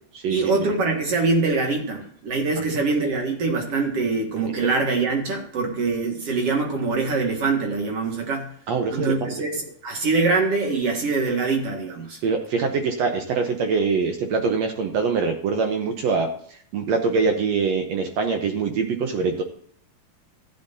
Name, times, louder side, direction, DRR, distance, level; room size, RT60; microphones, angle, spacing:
voice 1, 0.3-8.5 8.9-12.2, right 3 dB, 50° right, 2 dB, 2.4 m, -24 dB
voice 2, 8.7-9.3 12.2-16.3 16.7-19.4, right 5 dB, 80° right, 5 dB, 1.5 m, -23 dB
14.5 x 9.6 x 2.7 m, 0.62 s
omnidirectional pair, 4.3 m